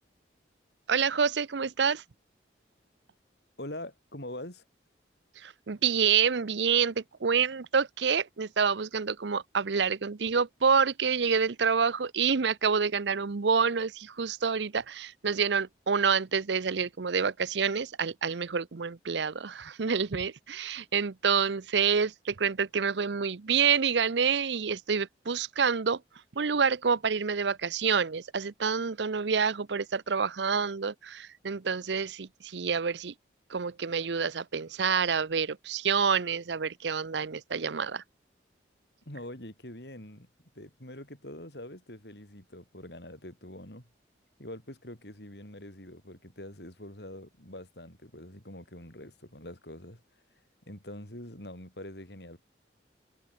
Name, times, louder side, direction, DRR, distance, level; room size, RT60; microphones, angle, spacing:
voice 1, 0.9-2.0 5.4-26.0 26.4-33.1 33.5-38.0, right 6 dB, 75° right, 0.7 m, -28 dB
voice 2, 3.6-4.6 39.1-40.3 40.6-43.9 44.4-50.0 50.7-52.4, left 1 dB, 65° left, 7.3 m, -44 dB
head